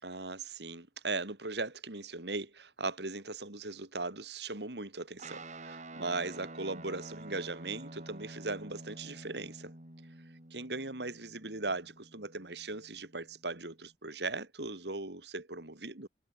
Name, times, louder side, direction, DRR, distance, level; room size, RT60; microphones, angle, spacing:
voice 1, 0.0-9.7 10.5-16.1, right 3 dB, 75° right, 3.1 m, -38 dB
Guitar, 5.2-13.9, right 2 dB, 45° right, 5.7 m, -49 dB
head